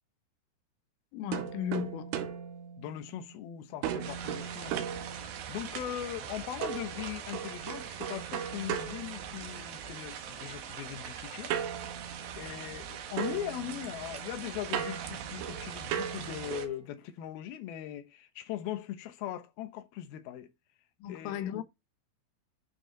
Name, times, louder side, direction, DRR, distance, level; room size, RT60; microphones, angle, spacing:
voice 1, 1.1-2.1 21.0-21.6, left 11 dB, 85° left, 3.5 m, -35 dB
sound 1, 1.3-3.4 3.8-5.7 6.6-9.8 11.5-12.9 13.2-16.8, right 8 dB, 90° right, 3.8 m, -38 dB
voice 2, 2.8-4.9 5.2-11.5 12.4-20.5 21.1-21.5, left 12 dB, 70° left, 2.5 m, -40 dB
sound 2, 4.0-16.7, right 9 dB, 65° right, 2.6 m, -42 dB
12.0 x 4.8 x 4.0 m
omnidirectional pair, 5.6 m